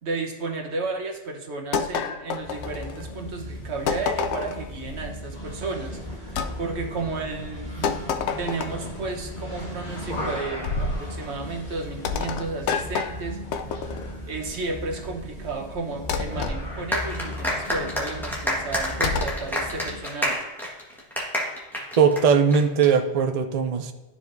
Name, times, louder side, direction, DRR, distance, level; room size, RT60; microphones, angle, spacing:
voice 1, 0.0-8.0 8.4-14.0 14.3-20.4, right 3 dB, 80° right, 2 dB, 1.3 m, -33 dB
sound 1, 1.7-3.2 3.9-4.7 6.4-6.5 7.8-9.0 10.6-11.1 12.0-14.2 16.1-16.6 19.0-19.4, left 5 dB, 85° left, 0.9 m, -28 dB
sound 2, 2.4-20.1, equal, 45° left, 1.5 m, -37 dB
sound 3, 16.9-22.9, left 1 dB, ahead, 1.3 m, -28 dB
voice 2, 22.0-23.9, right 6 dB, 45° right, 7 dB, 0.5 m, -19 dB
12.5 x 4.9 x 2.6 m, 1.2 s
omnidirectional pair, 1.1 m